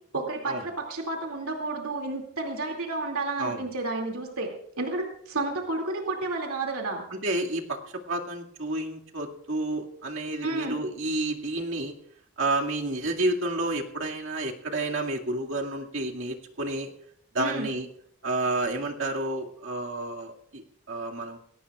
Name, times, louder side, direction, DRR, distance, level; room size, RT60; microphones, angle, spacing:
voice 1, 0.1-7.0 10.4-10.8 17.4-17.7, right 2 dB, 85° right, 1 dB, 2.5 m, -31 dB
voice 2, 7.2-7.8 8.1-11.9 12.4-16.9 17.3-17.9 18.2-21.4, right 2 dB, 65° right, 0 dB, 2.2 m, -30 dB
21.5 x 17.5 x 2.4 m, 0.70 s
head